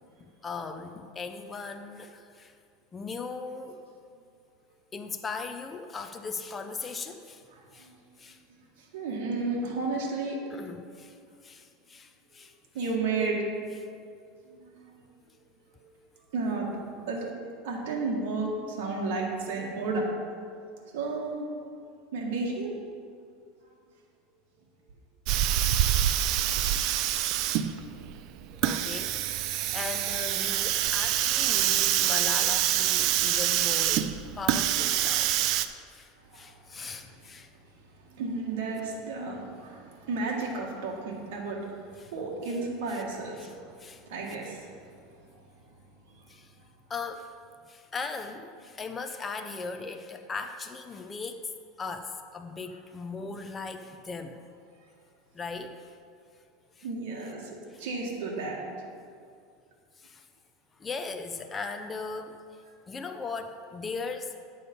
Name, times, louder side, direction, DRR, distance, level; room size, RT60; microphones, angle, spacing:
voice 1, 0.2-2.5 2.9-3.8 4.9-7.4 7.7-7.9 8.2-8.4 10.5-12.6 28.5-34.1 34.4-35.6 35.9-37.5 42.0-42.1 42.5-42.6 42.9-43.0 43.4-43.5 43.8-44.0 46.3-46.5 46.9-47.3 47.7-51.5 51.8-54.5 55.3-55.9 56.8-56.9 57.7-57.8 60.0-60.2 60.8-62.4 62.9-64.3, left 4 dB, 15° left, 6 dB, 0.5 m, -38 dB
voice 2, 7.5-7.9 8.9-10.4 12.7-13.4 14.5-14.9 15.8-15.9 16.3-16.7 17.1-17.3 17.6-20.1 20.9-21.5 22.1-22.8 36.3-36.9 38.1-43.5 44.1-44.7 56.8-57.5 57.8-58.6, right 3 dB, 70° right, -2 dB, 1.8 m, -32 dB
Hiss, 25.3-35.7, right 12 dB, 50° right, 0.4 m, -26 dB
9.9 x 6.9 x 5.5 m, 2.3 s
supercardioid pair, 150°, 0 cm